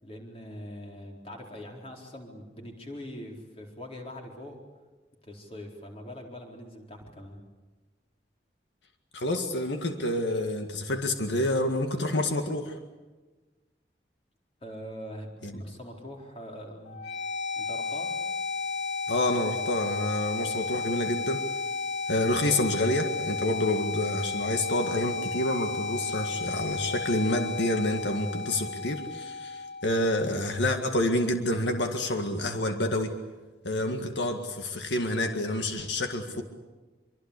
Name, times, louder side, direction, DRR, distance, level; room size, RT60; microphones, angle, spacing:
voice 1, 0.0-4.6 5.2-7.4 14.6-17.0 17.5-18.1, equal, 35° left, 1 dB, 4.3 m, -42 dB
voice 2, 9.1-12.8 15.4-15.6 19.1-21.5 22.1-33.2 33.6-36.4, left 1 dB, 85° left, 5 dB, 1.9 m, -28 dB
sound 1, 16.9-30.8, left 4 dB, 70° left, 2.2 m, -33 dB
25.5 x 24.0 x 8.4 m, 1.3 s
head